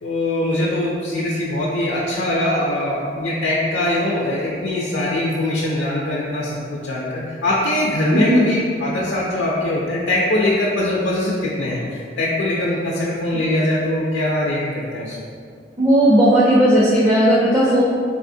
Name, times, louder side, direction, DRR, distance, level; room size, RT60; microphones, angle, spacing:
voice 1, 0.0-15.2, left 1 dB, 70° left, -5 dB, 0.4 m, -22 dB
voice 2, 8.1-8.5 15.8-17.8, equal, 20° right, -7 dB, 0.4 m, -15 dB
3.5 x 2.7 x 2.6 m, 2.2 s
head